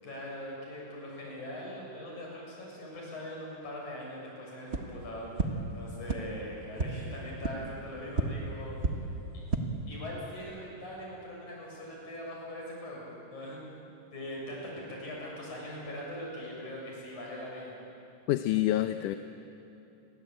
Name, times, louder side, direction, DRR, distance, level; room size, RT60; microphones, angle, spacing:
voice 1, 0.0-8.8 9.9-17.7, left 1 dB, 70° left, -3 dB, 8.8 m, -41 dB
sound 1, 4.7-4.8 5.4-5.5 6.1-6.2 6.7-6.9 7.4-7.5 8.1-8.2 8.8-8.9 9.4-9.6, right 3 dB, 30° right, 1.2 m, -29 dB
voice 2, 18.3-19.2, left 14 dB, 90° left, 8 dB, 2.3 m, -27 dB
29.0 x 23.0 x 8.9 m, 2.9 s
omnidirectional pair, 3.6 m